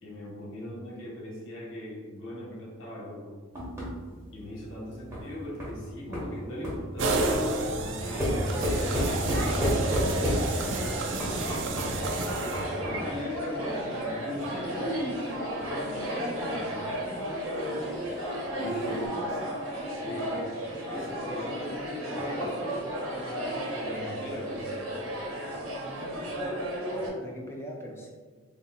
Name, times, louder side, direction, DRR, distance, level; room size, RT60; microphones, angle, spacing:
voice 1, 0.0-3.4 4.3-12.0 12.7-17.1 18.5-20.5 20.9-24.9, left 1 dB, 75° left, -4 dB, 0.9 m, -40 dB
sound 1, 3.5-6.9 8.2-10.7 11.2-13.1 15.2-19.1, equal, 15° right, 0.8 m, -32 dB
sound 2, 7.0-13.0, right 2 dB, 65° right, 0.4 m, -31 dB
sound 3, 8.0-27.1, equal, 85° right, 0.8 m, -34 dB
voice 2, 26.0-26.6 26.9-28.1, equal, 10° left, -1 dB, 0.4 m, -43 dB
3.4 x 2.4 x 2.7 m, 1.5 s
head